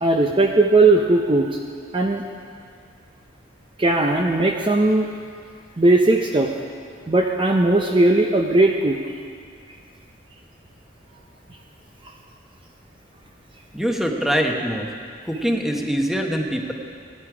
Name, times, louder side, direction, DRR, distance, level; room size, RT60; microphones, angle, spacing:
voice 1, 0.0-1.5 1.9-2.2 3.8-5.1 5.8-6.5 7.1-9.0, right 2 dB, 30° right, 2 dB, 0.7 m, -18 dB
voice 2, 13.7-14.9 15.2-16.7, equal, ahead, 1 dB, 1.1 m, -23 dB
17.0 x 10.5 x 4.9 m, 2.2 s
head